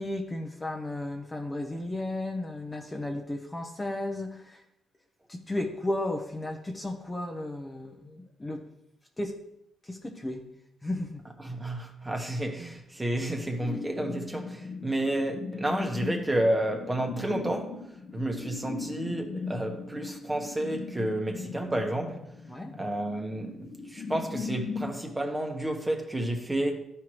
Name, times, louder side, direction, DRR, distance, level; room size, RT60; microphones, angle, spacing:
voice 1, 0.0-4.6 5.3-8.7 9.2-9.4 9.8-10.4 10.8-11.2 22.5-22.7, left 1 dB, 20° left, 1.0 m, -34 dB
voice 2, 11.4-17.8 18.1-22.2 22.8-26.8, right 1 dB, 15° right, 1.3 m, -30 dB
sound 1, 13.5-25.0, left 4 dB, 45° left, 1.0 m, -39 dB
12.5 x 4.6 x 3.1 m
cardioid pair, 90°, 0 cm